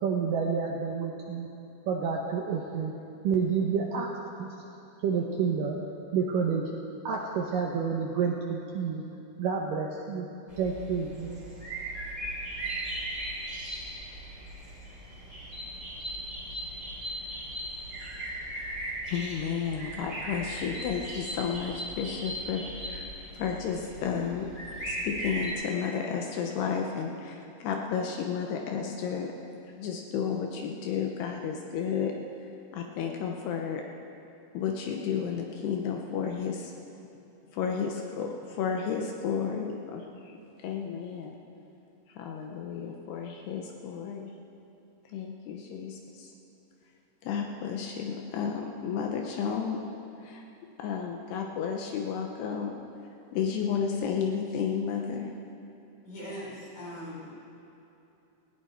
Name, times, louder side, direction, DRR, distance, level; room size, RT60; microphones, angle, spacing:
voice 1, 0.0-1.5 1.9-2.9 3.2-4.1 4.4-4.5 5.0-5.8 6.1-6.6 7.0-9.0 9.4-10.3 10.6-11.4, right 6 dB, 70° right, 0 dB, 2.2 m, -29 dB
sound 1, 10.5-25.5, right 1 dB, 10° right, 3.0 m, -38 dB
voice 2, 19.1-23.1 23.3-24.5 24.9-29.3 29.8-32.1 32.7-33.8 34.5-36.7 37.5-41.4 42.1-44.2 45.1-46.3 47.2-49.8 50.2-50.4 50.8-52.8 53.3-55.3, left 7 dB, 75° left, 2 dB, 2.9 m, -32 dB
voice 3, 56.0-57.4, equal, 50° left, -7 dB, 6.2 m, -40 dB
19.0 x 16.0 x 4.5 m, 2.9 s
omnidirectional pair, 4.9 m